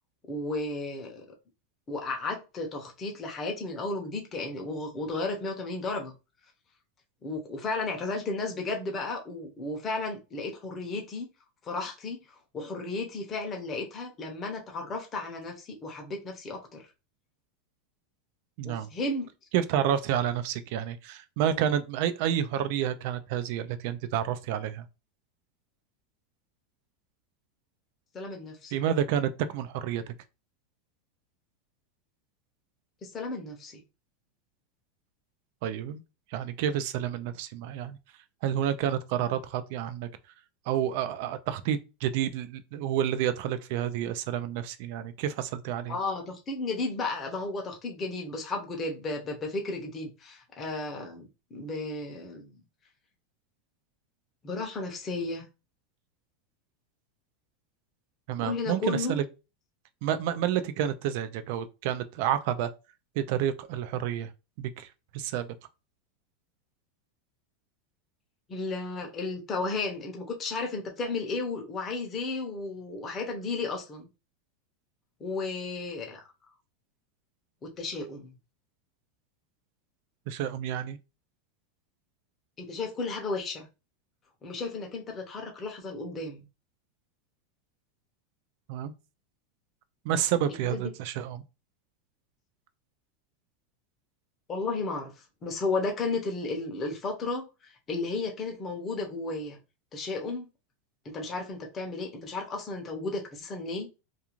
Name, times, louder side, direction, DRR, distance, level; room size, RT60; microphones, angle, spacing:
voice 1, 0.3-1.3 1.9-6.1 7.2-11.3 11.6-12.2 12.5-16.8 18.6-19.3 28.1-28.7 33.0-33.8 45.9-52.5 54.4-55.4 58.4-59.2 68.5-74.1 75.2-76.2 77.6-78.3 82.6-83.7 84.4-86.4 90.7-90.9 94.5-95.1 95.4-97.5 97.9-99.6 99.9-100.5 101.0-103.9, left 3 dB, 20° left, 0.7 m, -33 dB
voice 2, 18.6-18.9 19.5-24.9 28.7-30.1 35.6-36.0 36.3-38.0 38.4-40.1 40.7-46.0 58.3-59.3 60.0-62.7 63.2-64.3 64.6-64.9 65.1-65.5 80.3-81.0 88.7-88.9 90.0-91.4, right 10 dB, 55° right, 0.3 m, -29 dB
2.4 x 2.4 x 2.9 m
supercardioid pair, 155°, 0 cm